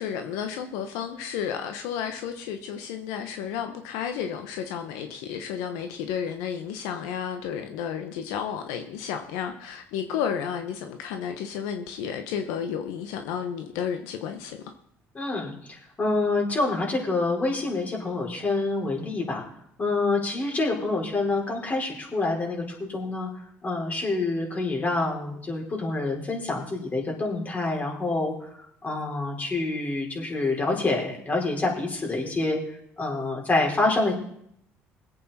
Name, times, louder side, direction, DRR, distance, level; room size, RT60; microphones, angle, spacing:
voice 1, 0.0-14.6, left 8 dB, 85° left, 6 dB, 1.1 m, -32 dB
voice 2, 15.1-19.4 19.8-23.3 23.6-28.3 28.8-32.6 33.0-34.1, left 2 dB, 30° left, 0 dB, 4.8 m, -27 dB
21.0 x 8.4 x 4.3 m, 0.71 s
supercardioid pair, 85°, 5 cm